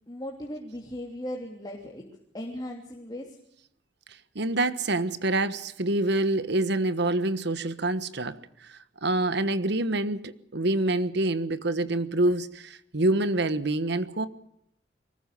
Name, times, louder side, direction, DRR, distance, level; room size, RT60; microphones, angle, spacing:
voice 1, 0.1-2.0 2.3-3.3, left 1 dB, 20° left, 3.1 m, -37 dB
voice 2, 4.3-14.3, right 2 dB, 65° right, 1.4 m, -26 dB
24.0 x 20.0 x 6.9 m
head